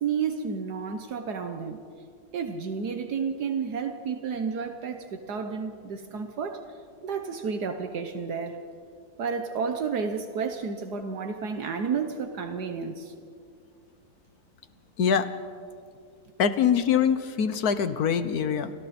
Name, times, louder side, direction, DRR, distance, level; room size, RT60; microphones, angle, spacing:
voice 1, 0.0-1.8 2.3-6.6 7.0-8.6 9.2-13.1, right 6 dB, 75° right, 7 dB, 1.7 m, -31 dB
voice 2, 15.0-15.3 16.4-18.7, left 7 dB, 65° left, 12 dB, 1.5 m, -24 dB
30.0 x 25.5 x 4.3 m, 2.3 s
omnidirectional pair, 1.8 m